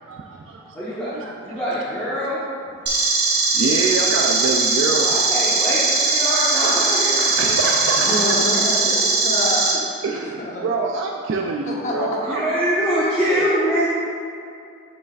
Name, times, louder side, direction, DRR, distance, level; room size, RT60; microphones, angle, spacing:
voice 1, 0.1-0.8 1.1-1.8 3.5-5.1 7.4-8.4 10.0-12.4 13.3-13.5, right 4 dB, 70° right, 1 dB, 0.4 m, -26 dB
voice 2, 0.7-1.1 1.4-2.4 4.4-4.5 4.9-7.3 12.2-13.9, equal, 10° left, -11 dB, 1.0 m, -23 dB
sound 1, 2.9-9.7, right 3 dB, 50° right, 1.2 m, -20 dB
voice 3, 7.9-9.8 10.4-10.8 11.6-12.1, left 1 dB, 35° left, -3 dB, 0.9 m, -26 dB
7.2 x 6.5 x 2.4 m, 2.4 s
head